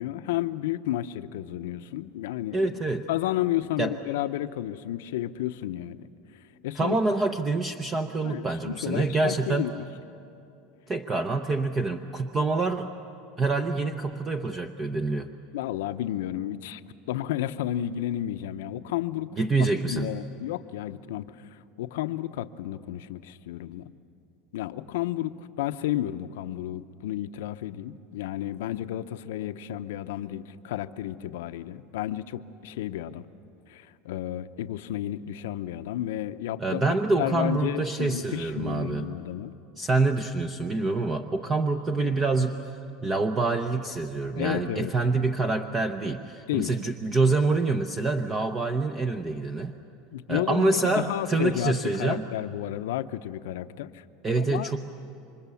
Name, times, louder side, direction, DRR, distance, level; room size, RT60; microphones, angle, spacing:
voice 1, 0.0-2.6 3.1-6.0 6.6-6.9 8.2-9.8 15.5-16.8 17.1-19.3 19.9-21.5 21.8-23.9 24.5-33.3 33.7-39.5 44.4-44.9 46.5-46.7 50.1-54.0 54.4-54.8, left 13 dB, 85° left, 10 dB, 0.8 m, -32 dB
voice 2, 2.5-3.1 3.8-4.0 6.7-9.7 10.9-12.9 13.4-15.3 19.4-20.1 36.6-39.1 39.8-42.7 43.0-49.7 50.3-52.3 54.2-54.8, right 3 dB, 20° right, 7 dB, 0.8 m, -26 dB
28.0 x 25.0 x 7.1 m, 2.7 s
supercardioid pair, 150°, 0 cm